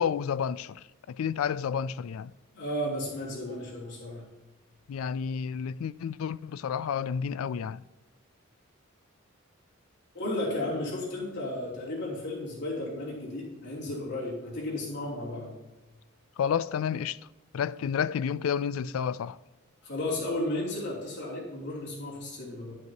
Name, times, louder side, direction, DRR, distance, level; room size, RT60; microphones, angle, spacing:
voice 1, 0.0-2.3 4.9-7.8 16.4-17.2 17.5-19.4, left 7 dB, 80° left, 0.3 m, -30 dB
voice 2, 2.5-4.2 10.1-15.5 19.8-22.8, left 1 dB, 55° left, 3.2 m, -34 dB
12.0 x 11.0 x 2.9 m
head